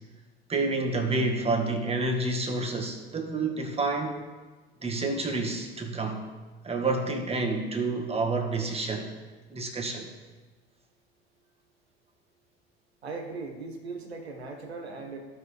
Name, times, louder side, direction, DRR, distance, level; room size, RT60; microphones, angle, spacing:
voice 1, 0.5-4.2 4.8-6.3 6.6-9.1 9.5-10.1, right 3 dB, 20° right, 2 dB, 1.7 m, -29 dB
voice 2, 13.0-15.2, right 3 dB, 85° right, 4 dB, 1.3 m, -38 dB
15.0 x 5.3 x 3.3 m, 1.3 s
figure-of-eight pair, 70°, 31 cm